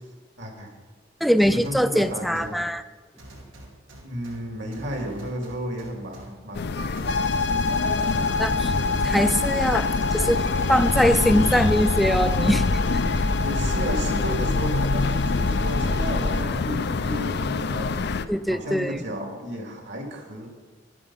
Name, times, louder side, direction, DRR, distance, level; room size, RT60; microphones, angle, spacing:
voice 1, 0.4-0.7 1.4-2.6 4.0-7.3 13.4-18.0 18.5-20.5, equal, 65° right, 2 dB, 2.4 m, -33 dB
voice 2, 1.2-2.8 8.4-8.7 9.0-12.6 18.3-19.0, equal, ahead, 12 dB, 0.3 m, -22 dB
sound 1, 1.4-2.5 3.2-4.4 4.7-6.3 7.0-8.1 8.5-9.0, right 1 dB, 90° right, 2.7 m, -44 dB
sound 2, 6.5-18.3, left 3 dB, 55° left, 0.5 m, -26 dB
sound 3, 7.1-16.4, left 3 dB, 75° left, 0.8 m, -27 dB
11.5 x 11.0 x 5.7 m, 1.4 s
head